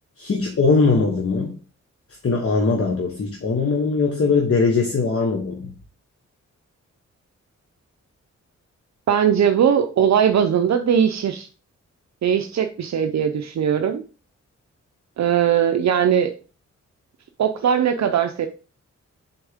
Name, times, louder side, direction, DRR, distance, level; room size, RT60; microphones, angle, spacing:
voice 1, 0.2-1.6 2.2-5.7, left 4 dB, 50° left, 1 dB, 1.3 m, -20 dB
voice 2, 9.1-11.5 12.2-14.0 15.2-16.3 17.4-18.5, right 8 dB, 70° right, 6 dB, 0.6 m, -19 dB
6.8 x 4.4 x 3.5 m, 0.37 s
wide cardioid pair, 95°, 29 cm